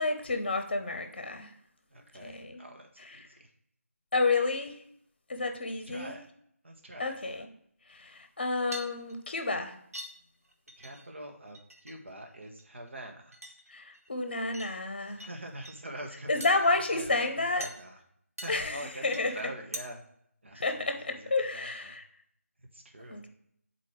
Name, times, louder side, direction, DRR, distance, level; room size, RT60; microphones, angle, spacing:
voice 1, 0.0-1.5 2.2-2.6 4.1-4.8 5.3-6.2 7.0-7.5 7.9-9.8 13.7-15.2 16.3-17.7 18.5-19.4 20.6-22.0 23.1-23.3, left 3 dB, 40° left, 6 dB, 0.8 m, -30 dB
voice 2, 1.9-3.5 5.8-6.2 6.6-7.1 10.8-13.4 15.1-18.0 18.4-20.0 20.4-21.9 22.7-23.2, right 1 dB, 50° right, 2 dB, 1.3 m, -45 dB
sound 1, 8.7-9.5 9.9-10.1 10.4-11.2 11.5-11.9 12.2-12.9 13.3-14.1 14.5-15.3 15.5-15.8 16.4-16.7 17.6-17.8 18.4-18.7 19.1-19.4 19.7-19.8, right 1 dB, 75° right, 1.2 m, -43 dB
8.3 x 4.4 x 3.2 m, 0.69 s
figure-of-eight pair, 160°, 8 cm